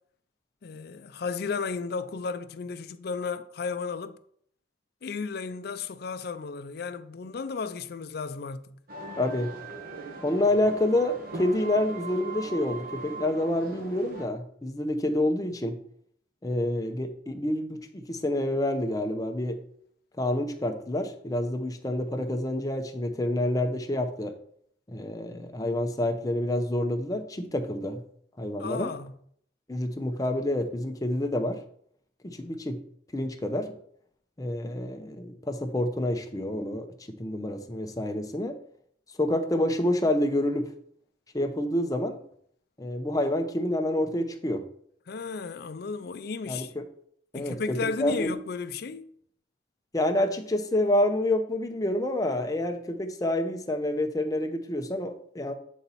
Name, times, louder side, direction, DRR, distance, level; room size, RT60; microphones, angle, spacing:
voice 1, 0.6-4.2 5.0-8.8 28.6-29.1 45.1-46.7 47.3-49.1, left 4 dB, 55° left, 0.4 m, -34 dB
sound 1, 8.9-14.3, right 3 dB, 50° right, 1.2 m, -40 dB
voice 2, 9.2-9.5 10.2-15.8 16.4-19.6 20.2-24.3 24.9-28.0 28.4-28.9 29.7-31.6 32.2-32.8 33.1-33.8 34.4-38.6 39.2-40.7 41.3-42.2 42.8-44.7 46.5-46.8 47.3-48.3 49.9-55.5, left 1 dB, 20° left, 0.6 m, -28 dB
8.4 x 4.1 x 4.1 m
head